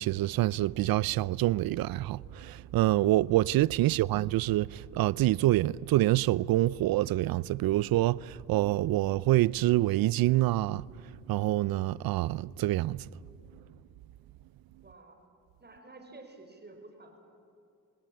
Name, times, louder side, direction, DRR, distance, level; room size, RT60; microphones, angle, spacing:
voice 1, 0.0-10.9 11.3-13.0, right 16 dB, 70° right, 0.6 m, -26 dB
voice 2, 14.8-15.2 15.6-17.2, right 2 dB, 25° right, 5.2 m, -51 dB
24.5 x 19.5 x 8.8 m
supercardioid pair, 65°, 37 cm